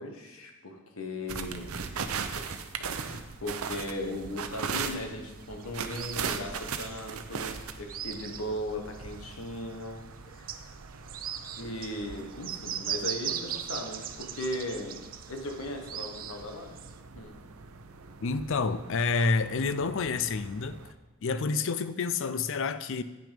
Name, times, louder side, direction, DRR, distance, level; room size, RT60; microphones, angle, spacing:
voice 1, 0.0-2.5 2.8-10.0 10.3-10.7 11.6-15.0 15.3-16.7 17.1-17.4, left 1 dB, 75° left, 1.3 m, -38 dB
sound 1, 1.3-20.9, right 6 dB, 85° right, 0.6 m, -40 dB
sound 2, 4.1-9.5 9.9-10.0 10.3-16.9, right 9 dB, 40° right, 0.5 m, -39 dB
voice 2, 18.2-20.8 21.2-23.0, left 4 dB, 60° left, 0.5 m, -28 dB
9.0 x 6.2 x 5.1 m
head